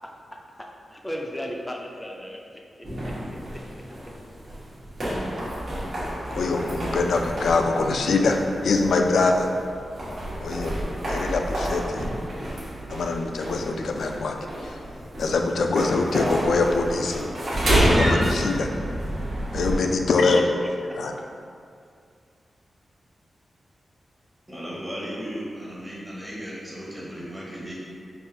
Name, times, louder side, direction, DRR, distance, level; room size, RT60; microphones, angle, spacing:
voice 1, 0.9-3.2 20.4-20.5 20.9-21.1, equal, 10° left, 0 dB, 0.4 m, -35 dB
sound 1, 2.8-19.8, right 1 dB, 50° right, 1.1 m, -29 dB
voice 2, 6.3-8.4 8.6-9.5 10.4-10.7 11.0-12.1 12.9-14.4 14.6-14.8 15.2-17.3 17.7-18.7 19.5-20.4 20.9-21.1, left 3 dB, 85° left, 3 dB, 0.3 m, -23 dB
voice 3, 24.5-27.7, equal, 10° right, -7 dB, 0.8 m, -35 dB
5.3 x 2.4 x 2.7 m, 2.3 s
wide cardioid pair, 155°, 0 cm